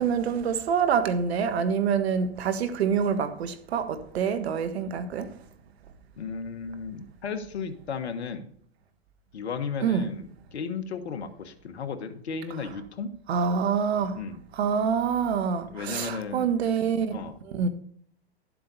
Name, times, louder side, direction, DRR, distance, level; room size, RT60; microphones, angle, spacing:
voice 1, 0.0-5.3 9.8-10.1 13.3-14.1 14.5-17.2 17.5-17.7, right 6 dB, 75° right, 1.5 m, -26 dB
voice 2, 6.2-8.5 9.3-13.1 14.2-14.4 15.7-16.5 17.1-17.4, left 5 dB, 85° left, 1.4 m, -34 dB
11.5 x 7.7 x 4.1 m
hypercardioid pair, 110°, 32 cm